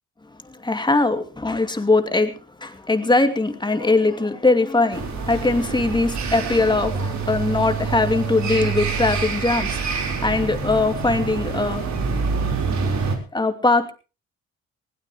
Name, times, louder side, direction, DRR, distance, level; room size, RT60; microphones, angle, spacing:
voice 1, 0.4-9.9 10.2-11.9 13.3-13.9, left 3 dB, 15° left, 2.6 m, -21 dB
sound 1, 4.9-13.2, right 5 dB, 65° right, 4.3 m, -26 dB
20.5 x 17.0 x 3.1 m
cardioid pair, 90°, 30 cm